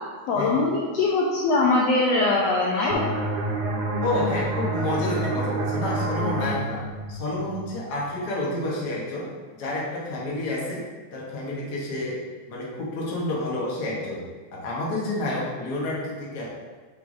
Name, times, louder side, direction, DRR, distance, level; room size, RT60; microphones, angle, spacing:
voice 1, 0.3-3.0, left 3 dB, 85° left, -3 dB, 1.4 m, -22 dB
sound 1, 2.9-8.3, right 2 dB, 90° right, 2.3 m, -29 dB
voice 2, 4.0-6.8 7.1-10.8 11.1-12.2 12.5-14.2 14.5-16.5, left 1 dB, 55° left, -4 dB, 1.1 m, -29 dB
6.3 x 5.5 x 2.7 m, 1.4 s
omnidirectional pair, 3.6 m